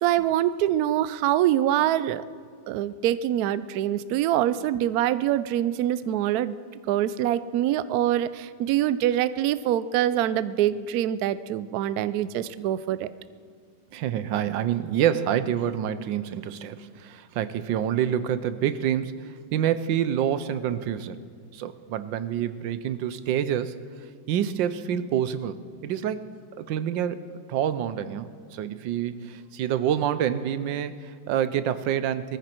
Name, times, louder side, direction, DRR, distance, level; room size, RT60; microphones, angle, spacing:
voice 1, 0.0-2.2 2.7-6.6 6.9-13.1, right 12 dB, 70° right, 15 dB, 0.9 m, -24 dB
voice 2, 13.9-21.2 21.5-23.8 24.3-32.4, right 10 dB, 90° right, 13 dB, 1.4 m, -27 dB
21.0 x 14.5 x 4.4 m, 2.1 s
omnidirectional pair, 2.0 m